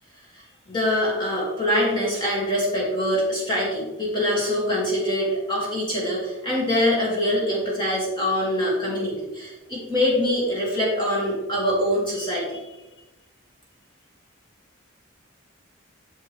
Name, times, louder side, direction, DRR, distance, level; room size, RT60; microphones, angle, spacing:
voice 1, 0.7-12.6, left 1 dB, 25° left, -5 dB, 2.4 m, -24 dB
8.8 x 6.4 x 3.5 m, 1.0 s
head